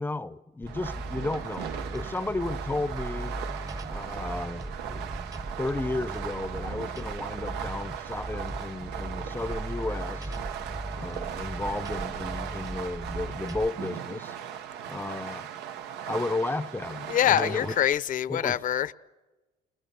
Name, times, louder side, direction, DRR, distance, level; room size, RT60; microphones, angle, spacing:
voice 1, 0.0-3.4 3.9-5.1 5.6-10.3 10.9-14.4 14.9-15.5 16.0-17.7 18.3-18.5, left 2 dB, 10° left, 0.7 m, -33 dB
sound 1, 0.6-13.7, right 1 dB, 20° right, 0.9 m, -38 dB
Fireworks, 0.7-17.9, right 9 dB, 85° right, 1.0 m, -38 dB
voice 2, 17.1-18.9, left 11 dB, 50° left, 0.8 m, -25 dB
28.0 x 21.0 x 6.9 m
cardioid pair, 110°, 17 cm